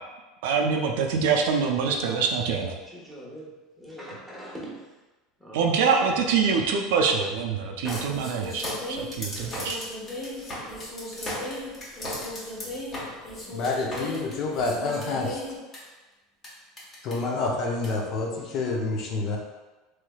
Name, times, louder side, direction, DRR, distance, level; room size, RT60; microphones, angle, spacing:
voice 1, 0.4-2.8 5.5-9.8, right 5 dB, 80° right, 2 dB, 0.4 m, -25 dB
voice 2, 2.9-3.5 3.8-4.8 5.4-5.8, right 1 dB, 5° right, -6 dB, 1.0 m, -41 dB
sound 1, 7.9-15.8 16.4-16.5 16.8-17.1 17.8-17.9, left 1 dB, 35° left, 1.2 m, -35 dB
voice 3, 13.5-15.4 17.0-19.4, left 3 dB, 50° left, 0 dB, 0.6 m, -28 dB
3.2 x 3.1 x 2.3 m, 1.2 s
supercardioid pair, 110°, 0 cm